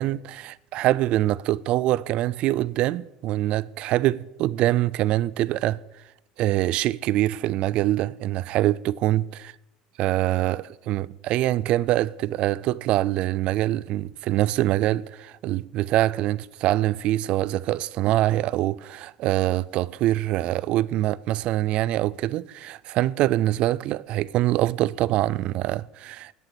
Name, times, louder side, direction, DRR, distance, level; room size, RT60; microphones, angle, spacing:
voice 1, 0.0-5.8 6.4-9.4 10.0-26.3, right 15 dB, 45° right, 0.3 m, -24 dB
8.2 x 7.9 x 9.0 m
cardioid pair, 160°, 3 cm